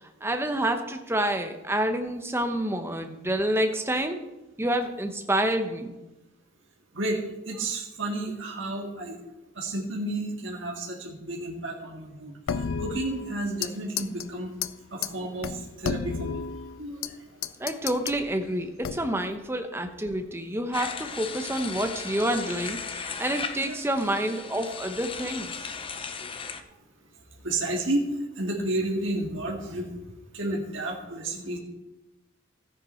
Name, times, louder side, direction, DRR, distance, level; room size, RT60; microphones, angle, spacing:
voice 1, 0.2-4.2 4.6-5.9 17.6-25.7, right 1 dB, 10° right, 6 dB, 0.9 m, -28 dB
voice 2, 6.9-9.2 9.6-14.5 14.9-16.4 16.8-17.1 23.6-23.8 24.3-24.4 25.6-25.7 27.4-28.0 28.4-29.9 30.3-31.6, right 1 dB, 70° right, -1 dB, 1.9 m, -31 dB
sound 1, 12.5-13.7 14.0-14.3 14.6-14.7 15.0-15.1 15.4-17.1 17.4-18.2 18.8-19.3, left 6 dB, 85° left, 0.5 m, -32 dB
sound 2, 20.7-26.6, left 5 dB, 25° left, 0.6 m, -36 dB
14.0 x 9.6 x 4.5 m, 1.0 s
head